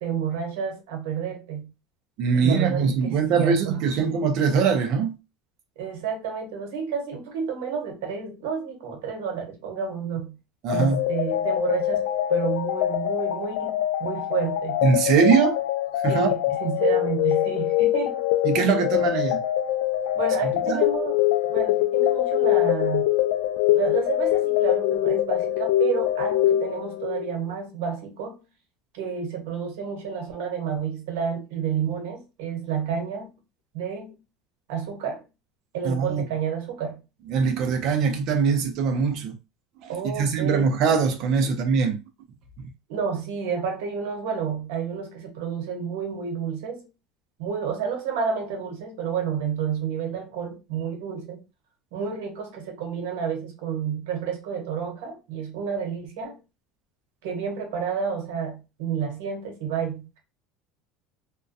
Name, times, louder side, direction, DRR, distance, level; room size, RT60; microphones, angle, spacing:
voice 1, 0.0-1.7 2.3-3.9 5.8-10.4 10.7-14.8 16.1-18.2 20.1-21.2 21.5-23.1 23.7-28.4 28.9-33.3 33.7-34.2 34.7-35.2 35.7-37.0 39.9-40.7 41.4-41.5 42.9-46.9 47.4-51.4 51.9-56.4 57.2-60.2, right 7 dB, 85° right, 0.9 m, -30 dB
voice 2, 2.2-5.2 10.6-11.0 14.8-15.6 16.0-16.3 18.4-19.4 20.7-20.8 35.8-36.2 37.3-39.4 39.8-42.0, right 5 dB, 45° right, 0.5 m, -22 dB
sound 1, 10.7-27.3, left 13 dB, 65° left, 0.3 m, -24 dB
2.3 x 2.1 x 2.5 m
cardioid pair, 180°, 0 cm